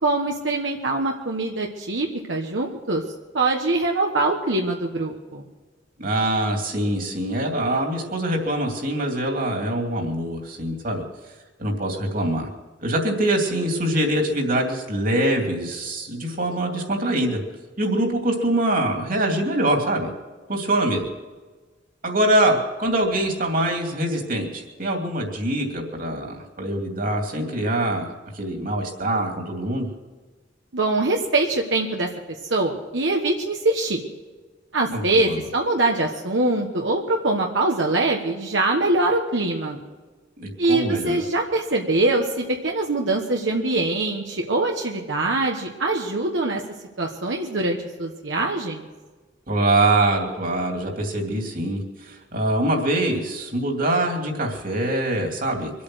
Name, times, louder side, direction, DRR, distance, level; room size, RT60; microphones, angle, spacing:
voice 1, 0.0-3.0 3.3-5.4 30.7-32.1 32.4-34.0 34.7-39.8 40.6-46.6 47.0-48.9, right 2 dB, 80° right, 1 dB, 1.3 m, -23 dB
voice 2, 6.0-11.0 11.6-12.5 12.8-17.4 17.8-20.1 20.5-21.1 22.0-28.1 28.3-29.9 34.9-35.4 40.4-41.2 49.5-55.7, right 1 dB, 50° right, 2 dB, 2.8 m, -24 dB
24.5 x 8.6 x 6.3 m, 1.3 s
head